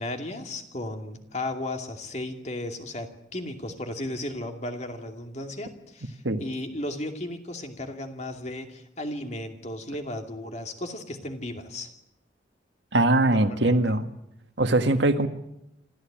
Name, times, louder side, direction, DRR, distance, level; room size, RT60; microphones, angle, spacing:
voice 1, 0.0-11.9 13.3-13.6, left 1 dB, 40° left, 4 dB, 2.5 m, -35 dB
voice 2, 12.9-14.1 14.6-15.3, right 2 dB, 80° right, 8 dB, 1.7 m, -21 dB
26.5 x 14.0 x 8.9 m, 0.87 s
head